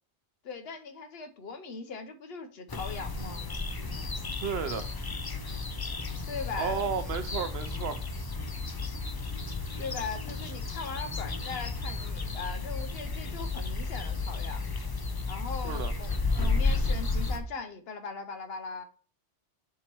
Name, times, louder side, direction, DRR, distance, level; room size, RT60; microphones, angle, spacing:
voice 1, 0.4-3.5 6.3-6.8 9.8-14.6 15.3-18.8, left 4 dB, 60° left, 0.8 m, -39 dB
sound 1, 2.7-17.4, left 3 dB, 30° left, 0.4 m, -33 dB
voice 2, 4.4-4.9 6.6-8.0 15.6-15.9, right 6 dB, 65° right, 0.8 m, -32 dB
7.2 x 2.9 x 4.4 m
omnidirectional pair, 1.2 m